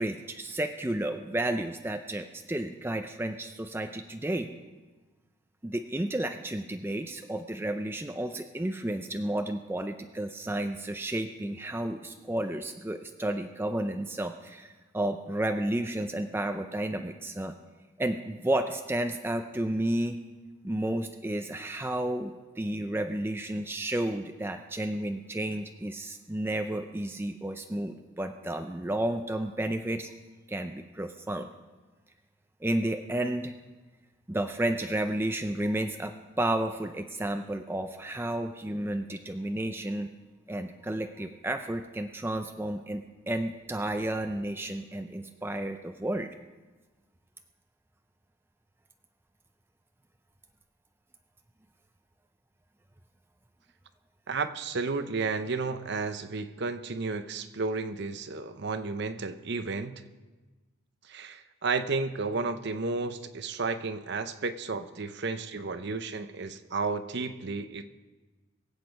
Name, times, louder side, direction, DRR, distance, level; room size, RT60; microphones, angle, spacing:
voice 1, 0.0-4.5 5.6-17.5 18.0-20.2 20.6-30.1 30.5-31.5 32.6-33.5 34.3-40.1 40.5-46.3, right 1 dB, 10° right, 6 dB, 0.5 m, -32 dB
voice 2, 54.3-60.0 61.1-67.9, right 4 dB, 55° right, 11 dB, 0.7 m, -32 dB
22.5 x 8.2 x 5.2 m, 1.3 s
head